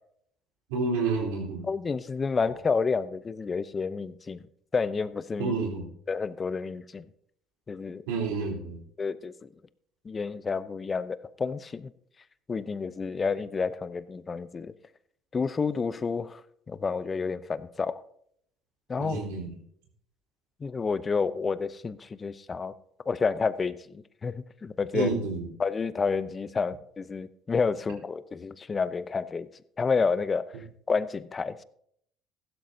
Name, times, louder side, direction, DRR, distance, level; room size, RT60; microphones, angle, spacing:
voice 1, 0.7-1.7 5.4-5.8 8.1-8.8 19.0-19.5 24.9-25.5, right 4 dB, 85° right, 0 dB, 3.6 m, -29 dB
voice 2, 1.7-4.4 4.7-5.5 6.1-7.0 7.7-8.0 9.0-9.5 10.1-11.9 12.5-14.7 15.3-16.4 16.7-18.0 18.9-19.2 20.6-22.7 23.1-23.7 24.2-24.3 24.6-25.1 25.6-29.5 29.8-30.4 30.9-31.6, left 5 dB, 30° left, 15 dB, 0.7 m, -29 dB
15.5 x 12.5 x 2.8 m, 0.68 s
hypercardioid pair, 70°, 0 cm